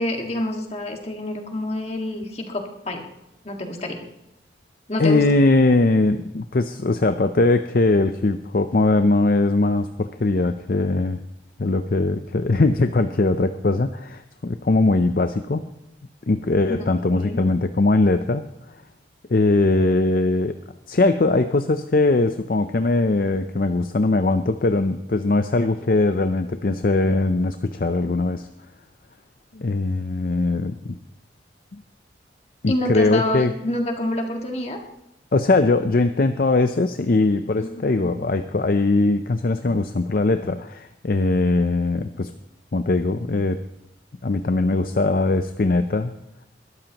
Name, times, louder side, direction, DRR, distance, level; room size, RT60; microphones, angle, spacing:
voice 1, 0.0-3.1 3.4-4.0 4.9-5.2 17.1-17.4 32.7-34.8 38.0-38.1, left 1 dB, 35° left, 2 dB, 1.8 m, -27 dB
voice 2, 5.0-11.2 11.6-15.6 16.3-18.8 19.3-20.6 20.9-28.5 29.5-31.0 31.7-31.8 32.6-33.5 35.3-42.3 42.7-43.7 44.2-46.1, left 2 dB, 50° left, 9 dB, 0.5 m, -20 dB
21.5 x 13.0 x 2.9 m, 0.86 s
head